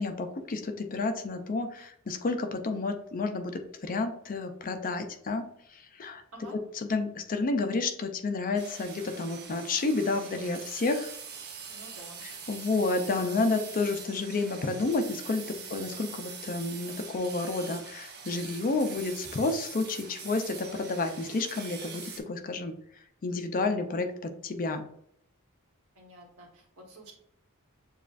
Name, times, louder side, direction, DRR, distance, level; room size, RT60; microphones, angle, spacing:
voice 1, 0.0-6.2 6.7-11.1 12.2-24.8, left 3 dB, 40° left, 6 dB, 0.5 m, -30 dB
sound 1, 8.6-22.2, right 6 dB, 50° right, 0.7 m, -43 dB
voice 2, 11.7-12.3 15.6-15.9 23.9-24.1 25.9-27.1, right 1 dB, 70° right, 0 dB, 1.3 m, -50 dB
7.0 x 2.4 x 2.5 m, 0.72 s
head